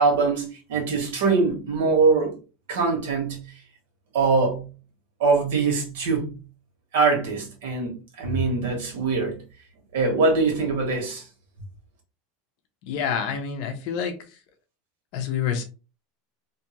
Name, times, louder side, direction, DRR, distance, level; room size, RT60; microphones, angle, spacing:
voice 1, 0.0-2.3 2.7-3.4 4.1-4.7 5.2-6.4 6.9-9.3 9.9-11.2, right 4 dB, 85° right, 1.2 m, -22 dB
voice 2, 12.9-14.1 15.1-15.6, left 7 dB, 55° left, 0.5 m, -27 dB
2.6 x 2.3 x 2.9 m
supercardioid pair, 155°, 0 cm